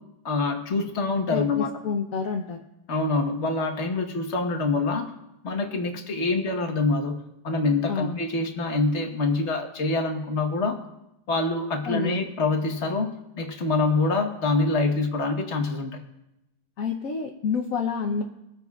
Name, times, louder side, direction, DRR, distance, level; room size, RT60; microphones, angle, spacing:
voice 1, 0.2-1.7 2.9-5.1 5.4-7.1 7.4-10.8 11.3-13.1 13.4-16.0, left 3 dB, 40° left, 3 dB, 1.3 m, -25 dB
voice 2, 1.3-2.6 7.9-8.2 11.8-12.2 16.8-18.2, left 5 dB, 55° left, 1 dB, 1.0 m, -28 dB
22.5 x 9.6 x 2.4 m, 0.87 s
omnidirectional pair, 2.3 m